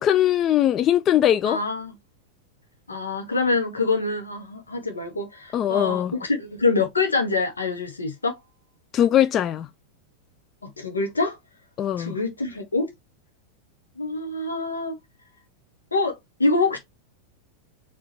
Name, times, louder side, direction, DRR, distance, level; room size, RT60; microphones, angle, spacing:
voice 1, 0.0-1.6 5.5-6.1 8.9-9.7 11.8-12.2, left 11 dB, 30° left, 0.3 m, -20 dB
voice 2, 1.4-1.9 2.9-8.4 10.8-11.4 12.0-12.9 14.0-15.0 15.9-16.8, left 3 dB, 75° left, 1.4 m, -25 dB
4.8 x 2.9 x 3.0 m
figure-of-eight pair, 90°, 0 cm